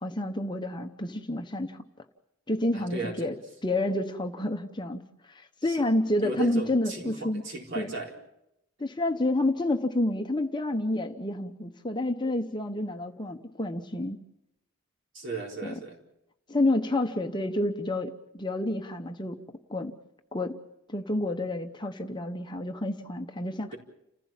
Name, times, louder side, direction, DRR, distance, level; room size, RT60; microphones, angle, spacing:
voice 1, 0.0-1.8 2.5-3.3 3.6-5.0 5.3-7.4 7.7-7.9 8.8-14.2 16.5-19.4 19.7-19.9 20.3-20.6 20.9-23.7, left 1 dB, 20° left, 6 dB, 0.9 m, -29 dB
voice 2, 2.7-3.3 5.6-5.8 6.2-8.1 15.1-16.0 23.7-23.8, right 3 dB, 55° right, 0 dB, 4.3 m, -36 dB
29.5 x 15.5 x 7.4 m, 0.85 s
head